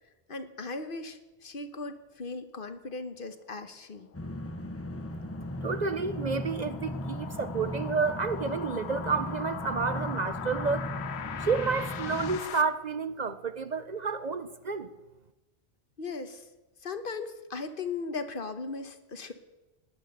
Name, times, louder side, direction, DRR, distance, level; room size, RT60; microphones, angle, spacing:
voice 1, 0.3-4.1 16.0-16.5 16.8-19.3, left 4 dB, 60° left, 9 dB, 1.2 m, -38 dB
sound 1, 3.9-12.6, left 8 dB, 90° left, 1.1 m, -41 dB
sound 2, 4.1-12.4, equal, 15° left, 0.7 m, -37 dB
voice 2, 5.6-10.9 11.4-14.9, right 5 dB, 50° right, 11 dB, 0.7 m, -30 dB
18.0 x 11.0 x 6.7 m, 1.1 s
omnidirectional pair, 1.1 m